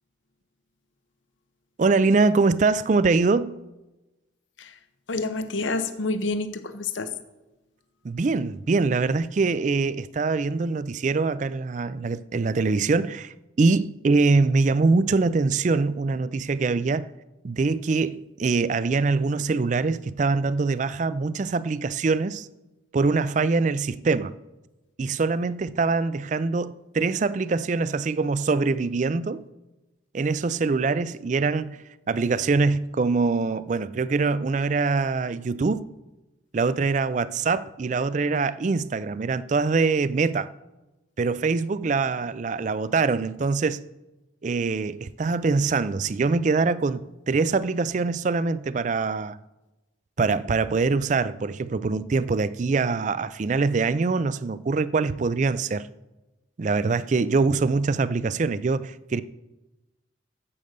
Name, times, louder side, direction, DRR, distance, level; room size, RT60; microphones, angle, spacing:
voice 1, 1.8-3.6 8.0-17.1 17.4-22.5 22.9-24.3 25.0-29.4 30.1-35.8 36.5-40.5 41.2-43.8 44.4-49.4 50.2-55.9 56.6-59.2, right 4 dB, 40° right, 0.4 m, -24 dB
voice 2, 5.1-7.1, left 3 dB, 85° left, 0.9 m, -28 dB
8.6 x 7.9 x 6.6 m
head